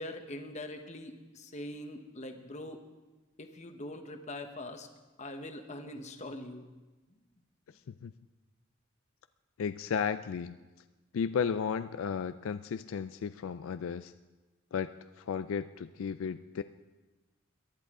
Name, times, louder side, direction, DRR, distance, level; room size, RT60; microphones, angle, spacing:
voice 1, 0.0-2.8 3.4-4.9 5.2-6.7, left 1 dB, 35° left, 6 dB, 1.0 m, -42 dB
voice 2, 9.6-10.6 11.1-14.1 14.7-16.6, left 6 dB, 70° left, 11 dB, 0.4 m, -34 dB
22.5 x 11.0 x 3.7 m, 1.2 s
head